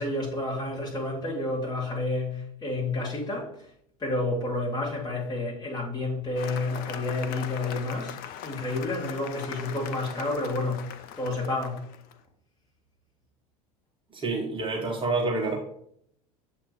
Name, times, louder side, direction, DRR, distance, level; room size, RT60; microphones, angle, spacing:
voice 1, 0.0-3.7 4.0-8.2 8.4-10.9 11.2-11.8, left 2 dB, 20° left, 2.3 m, -30 dB
Cheering / Applause, 6.4-12.1, left 9 dB, 50° left, 0.6 m, -40 dB
voice 2, 14.1-15.6, right 3 dB, 25° right, 1.2 m, -28 dB
7.3 x 2.9 x 4.8 m
hypercardioid pair, 75°, 19 cm